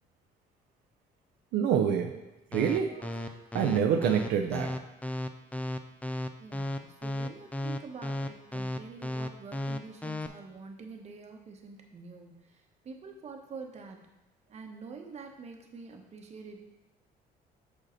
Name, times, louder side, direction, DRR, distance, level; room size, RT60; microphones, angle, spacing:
voice 1, 1.5-2.2 2.5-4.8, right 8 dB, 75° right, 3 dB, 0.5 m, -27 dB
sound 1, 2.5-10.3, left 1 dB, 10° left, 0.4 m, -34 dB
voice 2, 6.4-14.0 14.5-16.6, right 4 dB, 40° right, 3 dB, 1.1 m, -46 dB
6.3 x 5.0 x 4.3 m, 1.0 s
cardioid pair, 110°, 17 cm